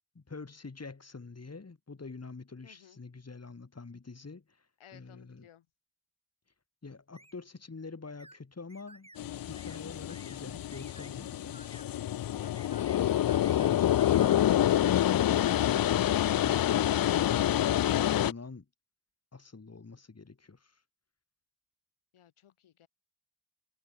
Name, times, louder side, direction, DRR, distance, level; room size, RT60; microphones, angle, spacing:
voice 1, 0.2-5.5 6.8-11.6 13.4-18.7 19.3-20.8, left 4 dB, 30° left, 5.2 m, -46 dB
voice 2, 2.6-3.0 4.8-5.7 13.9-14.3 22.1-22.9, left 10 dB, 80° left, 4.1 m, -57 dB
sound 1, 7.2-7.4 8.2-8.4 8.7-9.2 9.6-9.8 10.1-10.4 10.7-11.1 11.5-11.9 12.4-13.0 13.3-13.7 14.0-15.0, right 1 dB, 10° right, 5.8 m, -55 dB
sound 2, 9.2-18.3, left 12 dB, 45° left, 0.5 m, -27 dB
cardioid pair, 70°, 49 cm